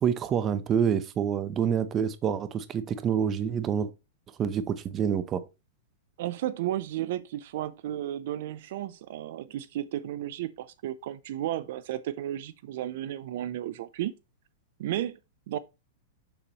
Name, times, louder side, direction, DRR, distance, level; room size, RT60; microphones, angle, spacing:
voice 1, 0.0-3.9 4.4-5.4, right 8 dB, 25° right, 0.7 m, -27 dB
voice 2, 6.2-14.1 14.8-15.2 15.5-15.6, right 12 dB, 60° right, 0.5 m, -33 dB
7.0 x 6.8 x 3.0 m
supercardioid pair, 150°, 0 cm